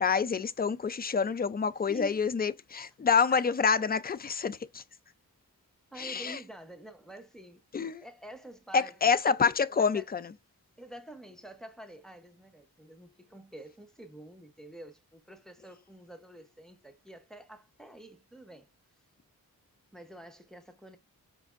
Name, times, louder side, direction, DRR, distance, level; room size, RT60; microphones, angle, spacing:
voice 1, 0.0-4.8 6.0-6.4 7.7-8.0 8.7-10.2, left 6 dB, 25° left, 0.3 m, -27 dB
voice 2, 1.9-2.3 3.2-3.4 5.9-7.6 8.0-9.0 9.3-10.1 10.8-18.7 19.9-21.0, right 1 dB, ahead, 0.8 m, -48 dB
5.3 x 3.3 x 2.4 m
wide cardioid pair, 70°, 36 cm